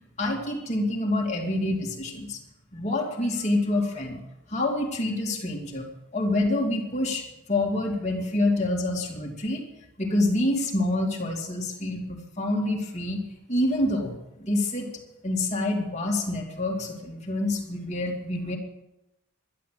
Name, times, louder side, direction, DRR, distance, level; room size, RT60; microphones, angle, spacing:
voice 1, 0.2-2.4 2.7-4.2 4.5-5.9 6.1-9.7 10.0-13.2 13.5-14.9 15.2-18.6, left 1 dB, 30° left, -1 dB, 2.7 m, -27 dB
12.0 x 11.5 x 7.7 m, 0.91 s
head